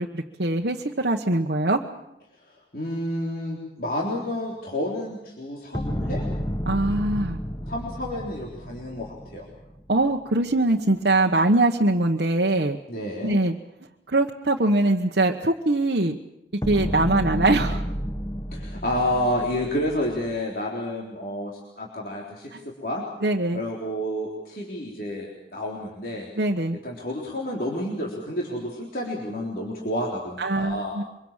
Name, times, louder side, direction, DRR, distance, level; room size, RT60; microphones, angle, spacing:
voice 1, 0.0-1.8 6.7-7.4 9.9-12.8 13.2-13.5 14.1-16.1 16.7-17.9 23.2-23.6 26.4-26.8 30.4-31.0, right 2 dB, 65° right, 1 dB, 1.2 m, -22 dB
voice 2, 2.5-6.3 7.7-9.5 12.9-13.4 18.5-22.5 22.8-23.1 23.5-26.3 26.8-30.9, left 1 dB, 50° left, -2 dB, 3.7 m, -30 dB
sound 1, 5.7-10.0 16.6-20.4, equal, 15° left, 1.1 m, -31 dB
25.0 x 23.5 x 7.4 m, 0.88 s
head